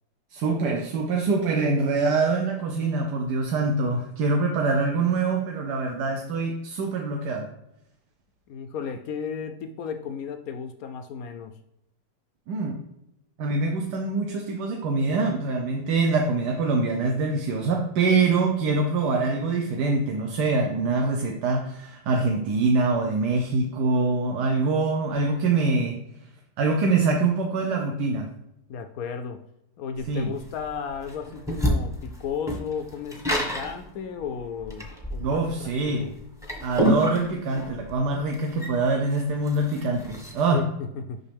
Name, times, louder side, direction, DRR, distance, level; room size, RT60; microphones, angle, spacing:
voice 1, 0.3-7.5 12.5-12.8 13.4-26.0 26.6-28.3 30.1-30.3 35.2-36.2 36.6-40.7, right 3 dB, 70° right, 2 dB, 1.2 m, -24 dB
voice 2, 8.5-11.5 28.7-29.4 29.8-36.1 40.5-41.2, left 6 dB, 75° left, 7 dB, 0.8 m, -34 dB
sound 1, 30.0-40.4, equal, ahead, 0.8 m, -29 dB
6.3 x 5.7 x 3.4 m, 0.83 s
omnidirectional pair, 2.0 m